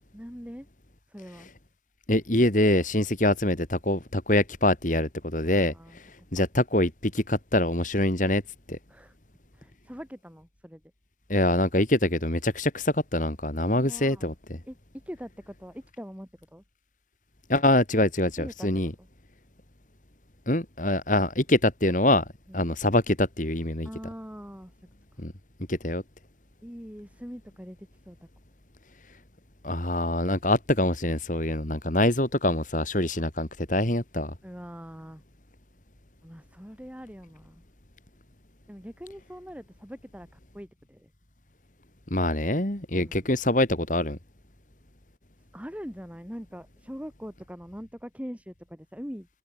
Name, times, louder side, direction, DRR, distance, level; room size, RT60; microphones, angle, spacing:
voice 1, 0.1-0.7 1.1-1.5 5.4-6.0 6.3-6.4 8.9-9.1 9.5-10.8 13.7-14.3 14.7-16.6 18.4-18.7 19.0-19.1 22.5-22.7 23.8-24.7 26.6-28.2 34.4-35.2 36.2-37.6 38.7-41.1 43.0-43.3 45.5-49.3, equal, 10° right, 6.0 m, -42 dB
voice 2, 2.1-8.4 8.7-8.8 11.3-14.6 17.5-18.9 20.5-22.3 22.5-23.9 25.2-25.3 25.7-26.0 29.6-34.3 42.1-44.2, left 1 dB, 45° left, 3.2 m, -25 dB
head